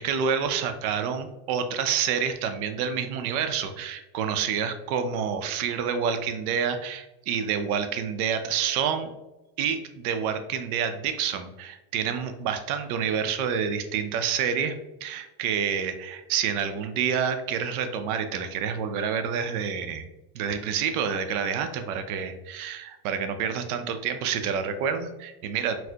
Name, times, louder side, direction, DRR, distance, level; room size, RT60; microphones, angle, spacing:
voice 1, 0.0-9.1 9.6-14.7 15.0-20.0 20.3-25.8, right 7 dB, 70° right, 8 dB, 0.5 m, -28 dB
4.1 x 2.0 x 2.7 m, 1.0 s
supercardioid pair, 160°, 45 cm